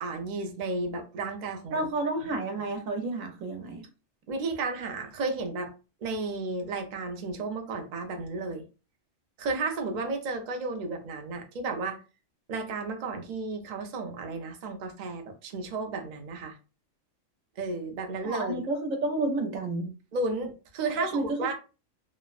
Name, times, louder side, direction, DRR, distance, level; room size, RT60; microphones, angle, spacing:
voice 1, 0.0-1.9 2.3-2.4 4.3-5.7 6.0-8.6 9.4-12.0 12.5-16.6 17.6-18.6 20.1-21.5, right 3 dB, 55° right, 0.5 m, -33 dB
voice 2, 1.7-3.8 18.2-19.9 21.0-21.5, right 2 dB, 85° right, 1.1 m, -30 dB
3.1 x 2.1 x 2.3 m
omnidirectional pair, 1.4 m